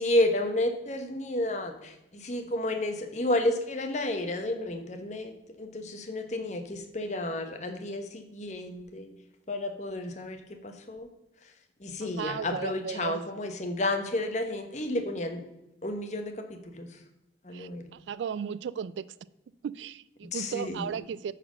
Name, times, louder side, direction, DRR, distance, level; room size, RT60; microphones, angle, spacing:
voice 1, 0.0-5.3 5.6-9.1 9.5-11.1 11.4-11.5 11.8-15.4 15.8-17.0 17.4-17.9 20.3-20.9, left 1 dB, 40° left, 1.0 m, -31 dB
voice 2, 12.0-13.2 17.5-19.0 19.6-21.3, right 7 dB, 80° right, 0.3 m, -35 dB
8.8 x 4.2 x 6.3 m
head